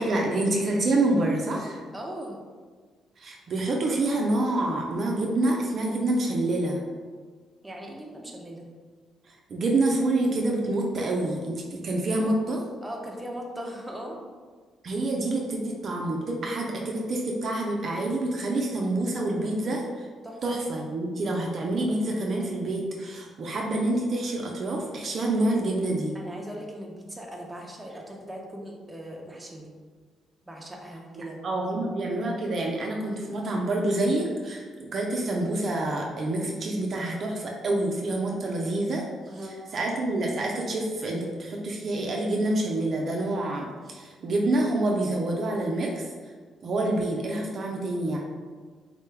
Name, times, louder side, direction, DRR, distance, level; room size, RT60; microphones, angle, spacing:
voice 1, 0.0-1.8 3.2-6.8 9.3-12.7 14.8-20.1 20.4-26.2 31.2-39.1 39.4-46.1 46.6-48.2, right 2 dB, 50° right, -1 dB, 0.5 m, -27 dB
voice 2, 1.9-2.4 7.6-8.6 12.8-14.2 20.2-20.4 26.1-29.7 30.5-31.4 39.3-39.6, equal, 10° right, -1 dB, 0.6 m, -39 dB
3.7 x 2.2 x 3.3 m, 1.5 s
cardioid pair, 90°, 0 cm